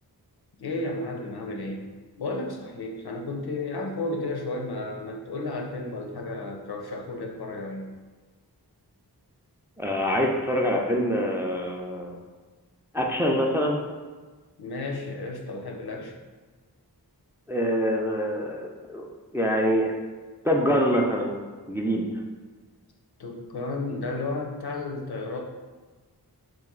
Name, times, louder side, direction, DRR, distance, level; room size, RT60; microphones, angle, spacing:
voice 1, 0.6-1.9 2.2-7.9 14.6-16.1 23.2-25.4, left 2 dB, 70° left, 1 dB, 0.6 m, -33 dB
voice 2, 9.8-12.1 12.9-13.8 17.5-19.0 19.3-19.9 20.4-22.1, equal, 5° right, 0 dB, 0.3 m, -25 dB
3.0 x 2.5 x 3.7 m, 1.4 s
wide cardioid pair, 50°, 40 cm